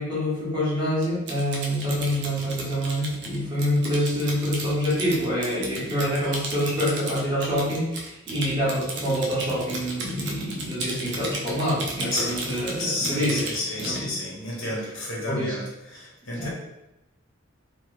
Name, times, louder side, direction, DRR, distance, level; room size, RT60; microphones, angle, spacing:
voice 1, 0.0-14.1 15.3-15.5 16.3-16.5, equal, 20° right, -8 dB, 1.2 m, -26 dB
Typing, 1.0-14.0, right 2 dB, 60° right, 0.6 m, -35 dB
voice 2, 12.8-16.5, left 2 dB, 70° left, -4 dB, 1.1 m, -31 dB
3.0 x 2.1 x 3.2 m, 0.93 s
head